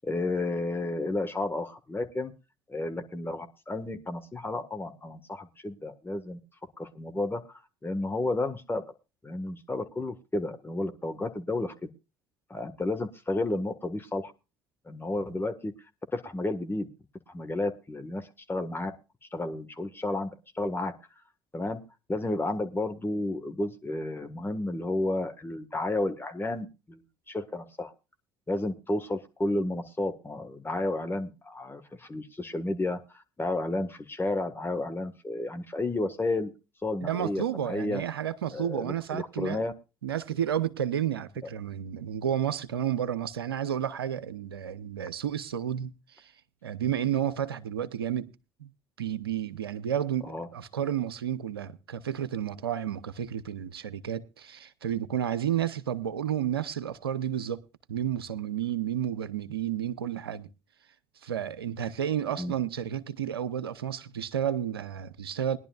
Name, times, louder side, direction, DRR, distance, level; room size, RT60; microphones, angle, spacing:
voice 1, 0.0-2.3 2.7-6.4 6.8-8.8 9.2-11.9 12.5-14.3 14.8-15.7 16.1-16.9 17.3-18.9 19.3-20.3 20.5-20.9 21.5-21.8 22.1-27.9 28.5-36.5 36.8-38.0 38.5-39.7 50.2-50.5 62.4-62.5, left 2 dB, 20° left, 1.6 m, -32 dB
voice 2, 37.0-39.6 40.0-46.3 46.6-48.3 48.6-48.7 49.0-57.6 57.9-60.5 61.2-65.6, right 9 dB, 85° right, 0.7 m, -31 dB
21.0 x 11.0 x 2.4 m
hypercardioid pair, 55°, 12 cm